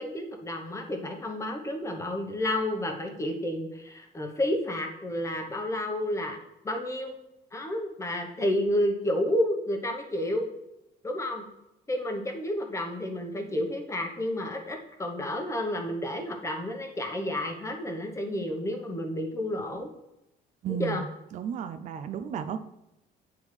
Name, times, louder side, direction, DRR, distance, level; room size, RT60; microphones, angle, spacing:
voice 1, 0.0-6.4 6.6-7.1 7.5-10.5 11.0-11.4 11.9-19.9 20.7-21.0, left 1 dB, 15° left, 3 dB, 1.0 m, -30 dB
voice 2, 20.6-21.1 21.3-22.6, right 8 dB, 45° right, 10 dB, 0.4 m, -33 dB
8.8 x 3.5 x 3.2 m, 0.88 s
cardioid pair, 110°, 17 cm